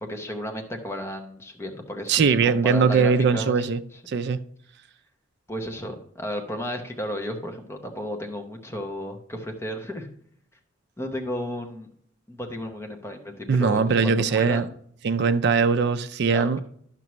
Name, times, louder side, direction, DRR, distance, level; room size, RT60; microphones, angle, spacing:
voice 1, 0.0-4.0 5.5-10.1 11.0-11.9 12.3-14.7 16.3-16.6, equal, 15° left, 0.8 m, -33 dB
voice 2, 2.1-3.8 4.1-4.4 13.5-14.6 15.0-16.6, right 5 dB, 55° right, 0.4 m, -21 dB
10.5 x 5.9 x 3.1 m
head